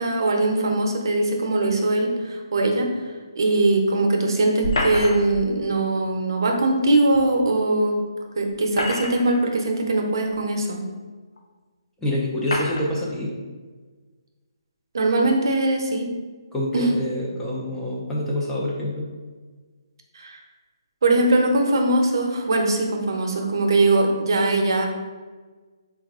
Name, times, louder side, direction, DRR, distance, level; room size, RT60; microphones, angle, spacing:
voice 1, 0.0-8.0 8.4-10.8 14.9-16.1 16.7-16.9 20.1-20.4 21.0-24.9, right 2 dB, 55° right, 2 dB, 0.6 m, -21 dB
sound 1, 4.6-5.4 7.1-7.2 8.5-9.4 10.3-10.4 11.4-11.5 12.4-12.9, left 1 dB, 85° left, 0.7 m, -27 dB
voice 2, 12.0-13.3 16.5-19.1, left 1 dB, 5° left, -5 dB, 0.3 m, -26 dB
3.9 x 2.3 x 3.5 m, 1.4 s
hypercardioid pair, 170°, 3 cm